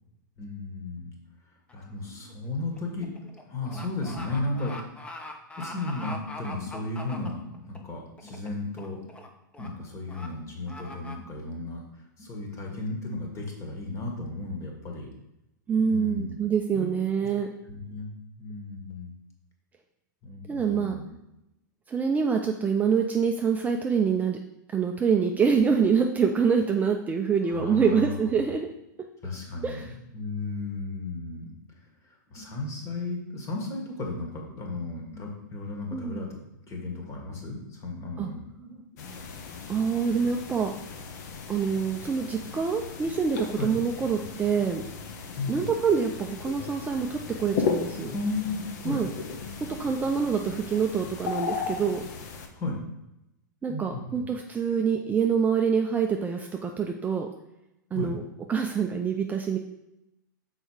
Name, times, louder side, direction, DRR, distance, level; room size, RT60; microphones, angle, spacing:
voice 1, 0.4-1.1 1.7-3.1 3.4-5.0 5.6-9.0 9.6-15.1 15.8-16.3 16.7-16.9 17.7-18.1 18.4-19.1 20.2-21.1 27.5-28.2 29.2-31.5 32.0-38.8 43.6-43.8 45.3-45.7 48.1-49.0 52.5-52.8 53.7-54.3 57.9-58.1, left 2 dB, 25° left, 1 dB, 1.8 m, -34 dB
sound 1, 1.7-1.9 2.3-7.8 8.2-8.5 8.8-9.3 9.5-9.7 10.1-10.3 10.7-11.2, left 1 dB, 10° left, 0.8 m, -41 dB
voice 2, 15.7-17.5 20.5-21.0 21.9-24.4 24.7-28.7 29.6-29.9 35.9-36.2 38.2-38.3 39.7-40.7 41.5-44.8 45.5-48.1 48.9-49.1 49.8-52.0 53.6-57.3 57.9-58.2 58.5-59.6, right 6 dB, 15° right, 3 dB, 0.5 m, -26 dB
sound 2, 39.0-52.5, left 5 dB, 55° left, 1.0 m, -36 dB
6.2 x 4.4 x 4.9 m, 0.87 s
hypercardioid pair, 105°, 11 cm